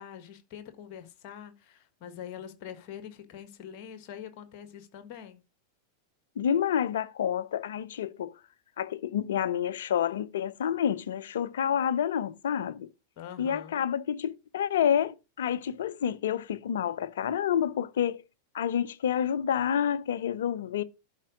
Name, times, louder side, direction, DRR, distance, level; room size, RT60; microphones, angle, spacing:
voice 1, 0.0-5.4 13.2-13.8, left 9 dB, 45° left, 1.4 m, -44 dB
voice 2, 6.4-8.3 8.8-12.9 13.4-18.2 18.5-20.8, left 9 dB, 60° left, 0.5 m, -29 dB
11.5 x 4.6 x 4.9 m
figure-of-eight pair, 90°, 0 cm